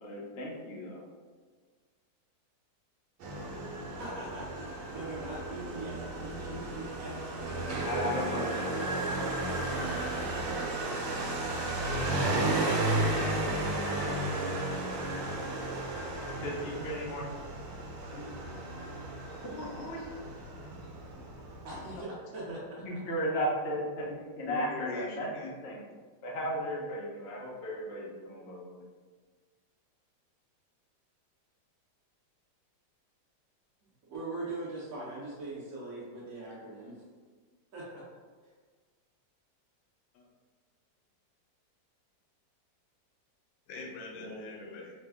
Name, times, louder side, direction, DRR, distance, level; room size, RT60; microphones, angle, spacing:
voice 1, 0.0-1.0 7.8-8.9 16.1-17.3 18.1-18.3 19.4-20.0 22.5-22.6 22.8-25.8 26.2-28.8 44.2-44.8, equal, 70° left, -3 dB, 0.6 m, -36 dB
Motorcycle, 3.2-22.0, right 2 dB, 90° right, 1.3 m, -34 dB
voice 2, 3.9-7.5 7.9-8.9 21.6-23.1 34.1-37.0 37.7-38.0, right 2 dB, 60° right, -7 dB, 1.0 m, -42 dB
voice 3, 13.1-13.8 24.4-25.6 40.1-40.2 43.7-44.9, left 3 dB, 90° left, -1 dB, 1.3 m, -43 dB
3.2 x 2.1 x 3.4 m, 1.5 s
omnidirectional pair, 2.0 m